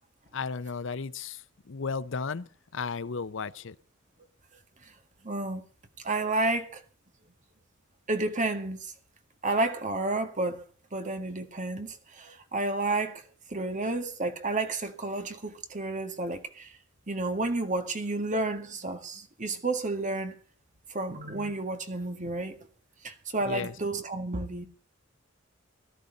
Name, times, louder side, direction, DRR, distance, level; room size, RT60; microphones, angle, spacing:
voice 1, 0.3-3.7 23.4-23.7, left 5 dB, 65° left, 0.7 m, -34 dB
voice 2, 5.2-5.6 6.0-6.8 8.1-8.9 9.4-10.6 10.9-13.2 13.5-16.7 17.1-20.3 20.9-22.6 23.0-24.7, right 2 dB, 40° right, 1.8 m, -31 dB
17.5 x 13.0 x 4.0 m
head